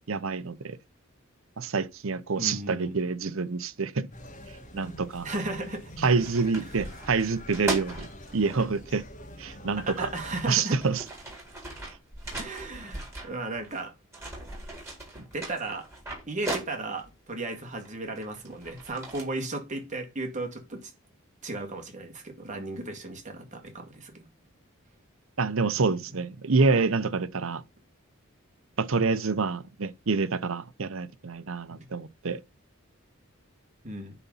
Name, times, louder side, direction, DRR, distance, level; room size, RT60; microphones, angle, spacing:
voice 1, 0.1-0.8 1.6-4.1 4.7-5.3 6.0-8.1 8.3-9.0 9.4-10.1 10.5-11.0 25.4-27.6 28.8-32.4, right 4 dB, 70° right, 0.8 m, -27 dB
voice 2, 2.4-2.9 5.2-5.9 9.8-10.8 12.4-13.9 15.3-15.9 16.3-20.9 21.4-24.3 25.7-25.9 31.7-31.9 33.8-34.1, right 2 dB, 35° right, 2.2 m, -35 dB
sound 1, 4.1-10.5, equal, 40° left, 1.5 m, -44 dB
sound 2, 5.7-5.8 6.0-8.7 9.8-9.9 10.5-13.8 14.1-17.1 17.8-19.2, right 2 dB, 15° right, 4.2 m, -38 dB
10.0 x 4.1 x 5.6 m
head